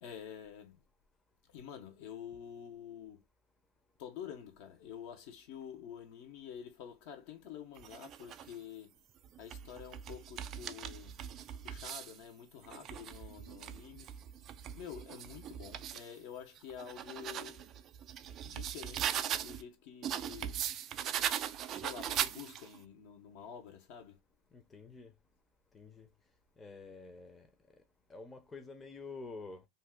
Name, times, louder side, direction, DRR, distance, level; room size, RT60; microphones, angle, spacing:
voice 1, 0.0-0.8 1.5-3.2 4.0-8.9 9.4-11.2 11.6-14.1 14.7-17.7 18.4-20.6 21.6-24.2, left 8 dB, 65° left, 0.9 m, -48 dB
sound 1, 7.8-8.5 9.2-12.2 12.6-16.1 16.6-19.6 20.0-22.8, right 10 dB, 40° right, 0.4 m, -39 dB
voice 2, 24.5-25.1 25.7-26.1 26.6-27.5 28.1-29.7, left 3 dB, 20° left, 0.7 m, -48 dB
2.8 x 2.3 x 3.5 m
hypercardioid pair, 105°, 0 cm